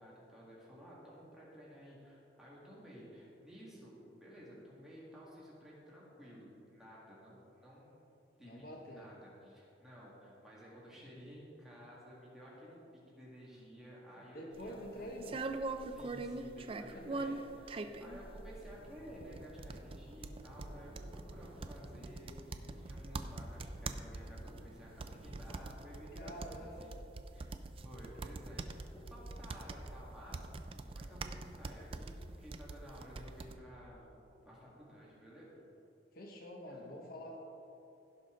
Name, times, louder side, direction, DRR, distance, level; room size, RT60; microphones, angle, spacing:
voice 1, 0.0-8.1 8.4-12.8 13.1-15.0 15.9-17.7 18.0-26.9 27.3-34.1 34.4-35.5 36.7-36.9, equal, 5° right, -7 dB, 1.9 m, -54 dB
voice 2, 8.4-9.1 14.3-15.5 16.9-17.2 26.1-27.1 36.1-37.4, equal, 55° left, 0 dB, 0.9 m, -47 dB
sound 1, 14.6-33.5, right 3 dB, 30° right, 0.4 m, -43 dB
sound 2, 18.6-25.6, equal, 80° right, 1.8 m, -57 dB
16.0 x 5.7 x 3.8 m, 2.9 s
head